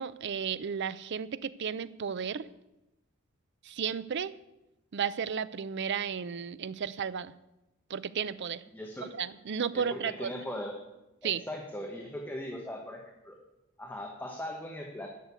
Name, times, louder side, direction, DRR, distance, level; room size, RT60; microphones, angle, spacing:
voice 1, 0.0-2.5 3.6-4.3 4.9-7.3 7.9-8.6 9.1-10.3 11.2-11.4, right 7 dB, 55° right, 16 dB, 0.5 m, -33 dB
voice 2, 8.7-9.1 9.7-10.8 11.2-13.4 13.8-15.1, left 1 dB, 10° left, 1 dB, 1.1 m, -39 dB
11.0 x 6.6 x 8.3 m, 0.95 s
head